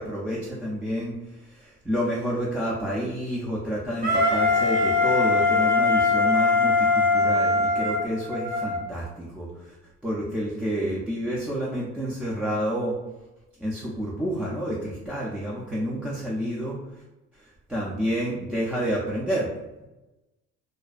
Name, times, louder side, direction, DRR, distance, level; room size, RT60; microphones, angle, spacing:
voice 1, 0.0-9.8 10.0-13.0 13.6-16.8 17.4-19.5, equal, 5° right, -6 dB, 0.4 m, -29 dB
Wind instrument woodwind instrument, 4.0-8.8, left 3 dB, 30° right, 0.7 m, -21 dB
2.5 x 2.1 x 2.4 m, 1.0 s
cardioid pair, 90°, 30 cm